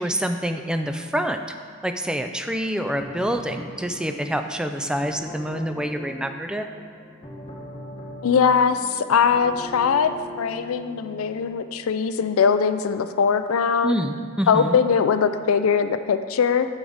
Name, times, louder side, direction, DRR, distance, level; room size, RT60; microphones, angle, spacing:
voice 1, 0.0-1.4 1.8-6.7 13.8-14.8, equal, 5° right, 6 dB, 0.3 m, -26 dB
sound 1, 3.0-11.5, equal, 25° left, 1.0 m, -40 dB
voice 2, 8.2-10.1 10.4-14.0 14.5-16.7, left 6 dB, 80° left, 10 dB, 0.4 m, -21 dB
9.1 x 6.2 x 4.0 m, 2.1 s
head